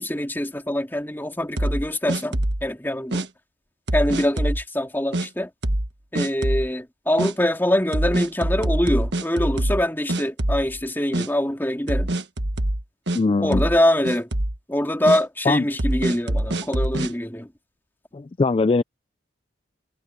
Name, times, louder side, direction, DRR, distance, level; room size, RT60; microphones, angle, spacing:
voice 1, 0.0-3.3 3.9-5.5 6.1-12.1 13.4-14.3 14.7-17.5, left 1 dB, 10° left, 2.8 m, -24 dB
sound 1, 1.6-2.7 3.1-3.3 3.9-4.6 5.1-5.3 5.6-5.9 6.1-6.7 7.2-7.3 7.9-9.8 10.1-10.8 11.1-11.3 11.9-13.2 13.5-13.8 14.0-14.6 15.1-15.2 15.8-17.1, right 1 dB, 65° right, 1.6 m, -24 dB
voice 2, 13.1-13.6 15.4-15.7 18.1-18.8, left 3 dB, 30° left, 0.3 m, -21 dB
head